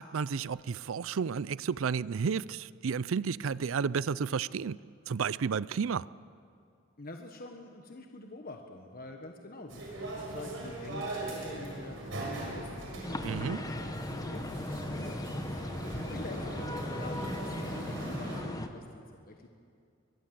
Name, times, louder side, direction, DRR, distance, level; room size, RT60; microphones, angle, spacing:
voice 1, 0.0-4.8 5.1-6.1 13.2-13.7, right 6 dB, 90° right, 0.5 m, -32 dB
voice 2, 7.0-13.6 14.1-15.8 16.1-19.5, left 2 dB, 50° left, 1.4 m, -46 dB
sound 1, 9.7-18.4, right 1 dB, 70° right, 6.3 m, -40 dB
sound 2, 13.0-18.7, left 1 dB, 20° left, 1.2 m, -38 dB
22.5 x 20.5 x 7.6 m
head